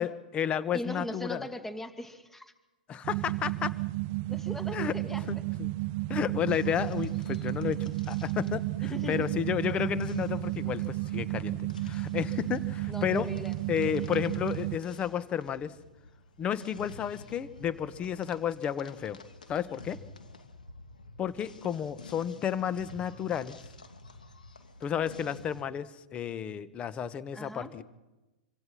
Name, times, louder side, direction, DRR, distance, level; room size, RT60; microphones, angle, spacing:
voice 1, 0.0-1.5 2.9-3.7 4.7-5.0 5.3-5.7 6.1-13.3 13.7-15.7 16.4-19.2 19.5-20.0 21.2-23.5 24.8-27.8, left 8 dB, 25° left, 15 dB, 1.5 m, -32 dB
voice 2, 0.7-2.5 4.3-5.3 8.8-9.2 12.9-13.6 14.0-14.1 27.3-27.7, left 1 dB, 10° left, 9 dB, 2.5 m, -39 dB
sound 1, 3.0-14.8, right 19 dB, 40° right, 0.7 m, -33 dB
sound 2, 6.5-25.6, left 2 dB, 80° left, 2.7 m, -50 dB
26.0 x 26.0 x 5.7 m, 1.1 s
figure-of-eight pair, 100°, 4 cm